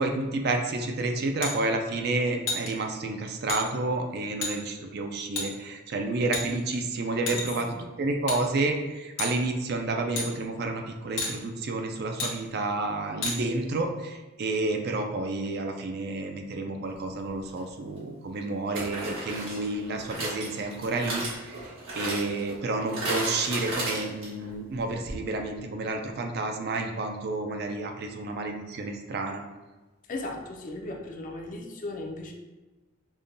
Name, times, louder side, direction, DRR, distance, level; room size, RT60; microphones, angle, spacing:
voice 1, 0.0-7.7 8.0-29.4, right 2 dB, 50° right, 4 dB, 0.4 m, -30 dB
sound 1, 1.4-1.6 2.5-2.7 3.5-3.6 4.4-4.5 5.4-5.5 6.3-6.8 7.3-7.6 8.3-8.4 9.2-9.4 10.2-10.3 11.2-11.3 12.2-12.3 13.2-13.4, left 3 dB, 70° left, 0.8 m, -30 dB
voice 2, 7.3-7.8 30.1-32.3, left 2 dB, 40° left, 2 dB, 0.4 m, -37 dB
sound 2, 17.5-17.6 18.7-24.5 24.8-24.9 25.1-25.2, right 1 dB, 90° right, 1.3 m, -34 dB
5.3 x 2.2 x 2.5 m, 1.2 s
head